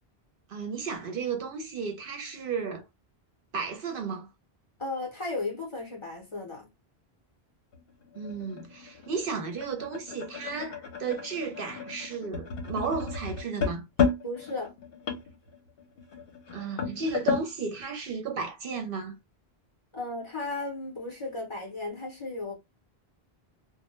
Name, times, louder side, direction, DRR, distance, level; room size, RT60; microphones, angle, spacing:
voice 1, 0.5-2.8 3.5-4.3 8.1-13.9 16.5-19.2, right 5 dB, 65° right, 0.7 m, -34 dB
voice 2, 4.8-6.7 14.2-14.7 19.9-22.5, left 2 dB, 35° left, 0.7 m, -35 dB
sound 1, 7.7-17.5, left 6 dB, 70° left, 0.8 m, -33 dB
2.1 x 2.1 x 2.9 m
omnidirectional pair, 1.0 m